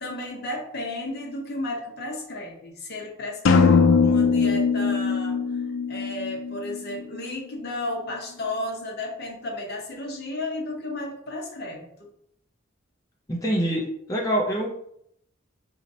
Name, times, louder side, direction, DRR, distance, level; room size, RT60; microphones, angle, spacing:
voice 1, 0.0-5.4 5.9-11.9, left 1 dB, 55° left, 0 dB, 0.8 m, -33 dB
sound 1, 3.5-7.3, left 5 dB, 80° left, 0.4 m, -21 dB
voice 2, 13.3-14.7, equal, 15° left, -2 dB, 0.5 m, -25 dB
3.9 x 3.0 x 2.7 m, 0.71 s
head